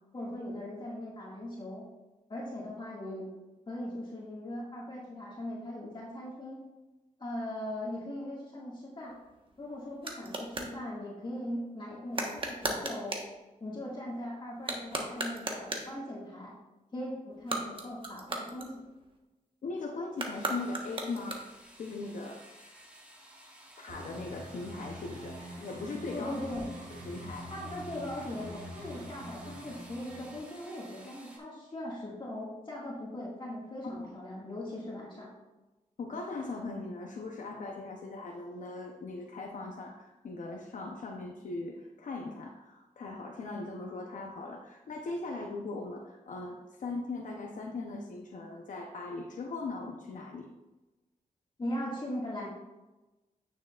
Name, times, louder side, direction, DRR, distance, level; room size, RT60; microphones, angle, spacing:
voice 1, 0.1-1.8 2.3-3.3 3.7-6.6 7.2-9.1 9.6-13.2 13.6-16.5 16.9-18.8 26.1-26.7 27.5-35.3 51.6-52.5, left 1 dB, 35° left, -5 dB, 1.9 m, -39 dB
sound 1, 9.0-10.8 12.1-13.3 14.5-16.0 17.3-19.2 20.1-21.7, right 2 dB, 40° right, 1.2 m, -37 dB
voice 2, 19.6-21.5 21.8-22.5 23.8-26.4 26.9-27.5 34.0-34.1 36.0-50.5, left 3 dB, 70° left, 1 dB, 0.7 m, -39 dB
sound 2, 20.3-31.4, right 1 dB, 10° right, 1.5 m, -55 dB
sound 3, 23.9-30.4, equal, 70° right, 1.4 m, -45 dB
9.3 x 6.4 x 2.4 m, 1.1 s
wide cardioid pair, 95°, 14 cm